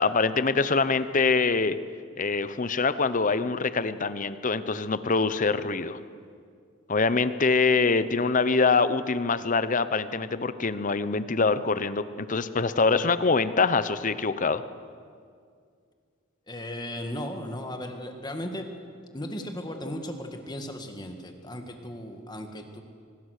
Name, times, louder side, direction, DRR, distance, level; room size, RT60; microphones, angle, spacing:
voice 1, 0.0-1.8 2.2-6.0 6.9-14.6, left 4 dB, 40° left, 13 dB, 0.8 m, -24 dB
voice 2, 16.5-18.7 19.1-22.8, left 1 dB, 20° left, 5 dB, 1.9 m, -36 dB
24.0 x 20.5 x 6.6 m, 2.2 s
head